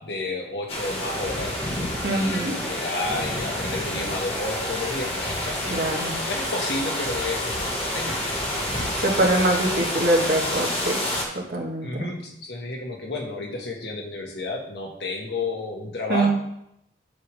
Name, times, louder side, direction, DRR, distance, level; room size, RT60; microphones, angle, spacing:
voice 1, 0.0-1.6 2.1-5.9 6.2-8.4 9.1-9.5 11.8-16.4, left 2 dB, 75° left, 1 dB, 1.5 m, -31 dB
sound 1, 0.7-11.3, left 1 dB, 35° left, 1.5 m, -28 dB
voice 2, 2.0-2.6 5.7-6.2 9.0-11.0 11.3-12.1 16.1-16.4, right 2 dB, 60° right, 0 dB, 1.5 m, -23 dB
8.0 x 3.6 x 6.2 m, 0.76 s
head